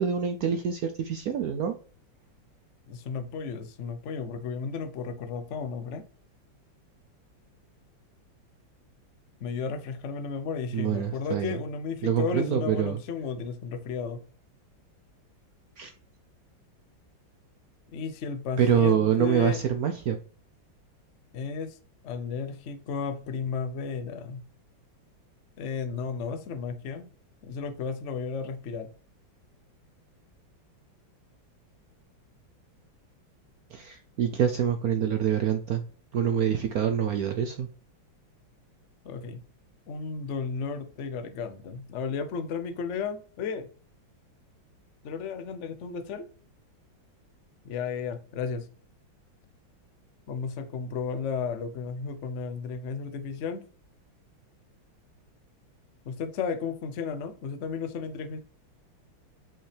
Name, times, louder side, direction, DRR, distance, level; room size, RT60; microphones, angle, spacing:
voice 1, 0.0-1.8 10.7-11.6 12.0-13.0 15.8-15.9 18.6-20.2 33.7-35.8 36.1-37.7, right 8 dB, 75° right, 0.8 m, -26 dB
voice 2, 2.9-6.0 9.4-14.2 17.9-19.6 21.3-21.8 22.0-24.4 25.6-27.1 27.4-28.9 39.0-39.4 39.9-43.7 45.0-46.3 47.6-48.7 50.3-53.6 56.0-58.4, left 5 dB, 75° left, 0.6 m, -33 dB
5.6 x 5.4 x 3.3 m
omnidirectional pair, 2.1 m